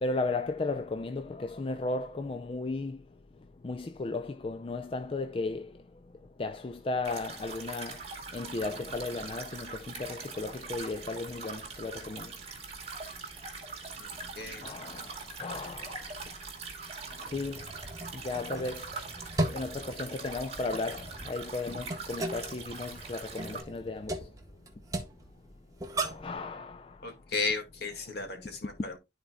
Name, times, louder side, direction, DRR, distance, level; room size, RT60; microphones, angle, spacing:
voice 1, 0.0-3.0 3.6-5.7 6.4-8.0 8.3-12.3 14.6-15.1 15.4-16.0 17.3-17.6 18.2-18.8 19.5-24.2 26.0-26.9, left 3 dB, 30° left, 0.4 m, -35 dB
Water Trickle, 7.0-23.6, right 4 dB, 35° right, 2.2 m, -42 dB
voice 2, 14.4-14.7 27.0-29.0, left 3 dB, 60° left, 1.9 m, -34 dB
sound 1, 17.3-26.4, right 1 dB, 20° right, 1.0 m, -38 dB
12.5 x 4.4 x 2.2 m
head